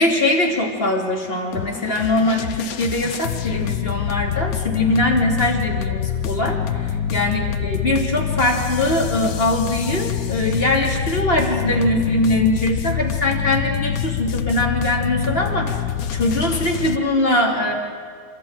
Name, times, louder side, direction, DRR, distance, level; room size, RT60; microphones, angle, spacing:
voice 1, 0.0-15.7 16.1-17.7, left 1 dB, 30° left, 0 dB, 3.4 m, -21 dB
sound 1, 1.5-17.0, left 9 dB, 60° left, 1.1 m, -25 dB
28.0 x 14.0 x 9.1 m, 2.1 s
omnidirectional pair, 2.0 m